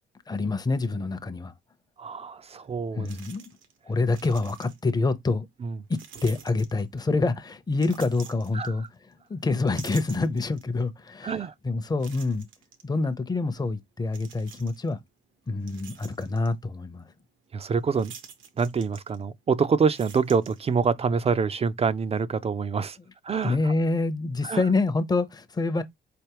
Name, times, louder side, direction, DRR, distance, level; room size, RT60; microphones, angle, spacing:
voice 1, 0.3-1.5 2.9-3.5 3.9-5.5 5.9-8.9 9.3-11.4 11.6-12.5 12.8-15.0 15.5-17.1 23.4-25.8, left 3 dB, 20° left, 0.7 m, -26 dB
voice 2, 2.0-3.1 5.6-5.7 8.5-8.7 11.2-11.5 17.5-18.1 18.6-23.0 23.2-23.7 24.4-24.6, right 5 dB, 30° right, 0.4 m, -26 dB
sound 1, 2.5-2.6 3.1-3.8 4.0-5.0 5.9-7.2 7.7-9.1 9.5-10.8 11.3-11.4 12.0-12.8 14.1-14.9 15.4-16.5 17.9-19.5 19.8-21.0, right 7 dB, 85° right, 1.0 m, -48 dB
4.4 x 3.4 x 2.9 m
cardioid pair, 90°, 20 cm